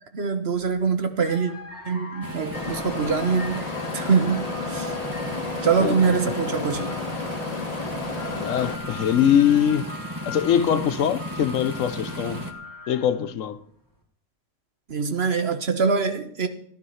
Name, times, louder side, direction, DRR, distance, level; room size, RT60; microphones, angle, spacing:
voice 1, 0.1-1.5 1.8-3.6 3.9-4.9 5.6-6.9 14.9-16.5, right 5 dB, 55° right, 1.4 m, -24 dB
sound 1, 0.5-0.8 1.2-13.3, left 2 dB, 15° left, 2.3 m, -41 dB
sound 2, 2.2-12.5, equal, 15° right, 1.4 m, -35 dB
sound 3, 2.5-8.7, left 4 dB, 30° left, 1.1 m, -32 dB
voice 2, 5.8-6.1 8.4-9.9 10.3-12.5 12.9-13.6, left 9 dB, 80° left, 1.1 m, -22 dB
15.0 x 10.5 x 5.6 m
omnidirectional pair, 1.3 m